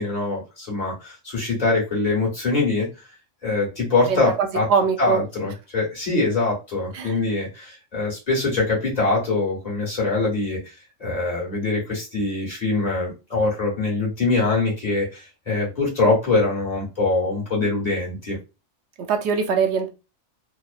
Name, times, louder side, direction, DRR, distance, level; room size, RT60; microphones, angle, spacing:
voice 1, 0.0-2.9 3.4-4.7 5.0-10.6 11.0-18.4, left 3 dB, 30° left, 1.4 m, -23 dB
voice 2, 4.1-5.3 6.9-7.2 19.0-19.9, right 6 dB, 65° right, 0.8 m, -22 dB
2.9 x 2.0 x 2.4 m
omnidirectional pair, 1.4 m